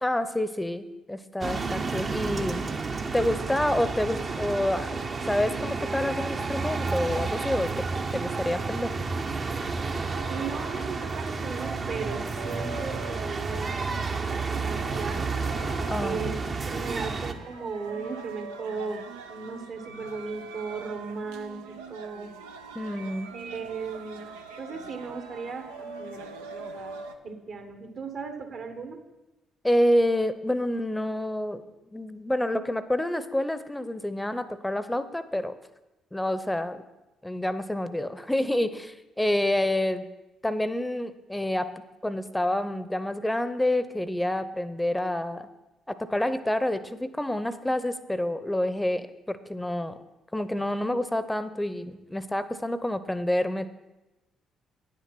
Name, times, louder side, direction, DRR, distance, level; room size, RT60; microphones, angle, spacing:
voice 1, 0.0-2.7 3.1-5.0 5.3-7.9 8.1-8.9 15.9-16.2 22.7-23.3 29.6-31.6 31.9-35.6 36.1-36.8 37.2-40.0 40.4-45.5 45.9-50.0 50.3-53.7, left 1 dB, 10° left, 13 dB, 0.7 m, -28 dB
sound 1, 1.4-17.3, right 4 dB, 40° right, 0.9 m, -31 dB
sound 2, 9.5-27.1, right 4 dB, 85° right, 0.6 m, -43 dB
voice 2, 10.3-15.3 16.0-16.4 16.7-22.3 23.3-24.3 24.6-26.3 26.7-27.0 27.2-29.0, right 4 dB, 60° right, 6 dB, 1.4 m, -36 dB
9.5 x 7.4 x 6.0 m, 1.0 s
hypercardioid pair, 50°, 0 cm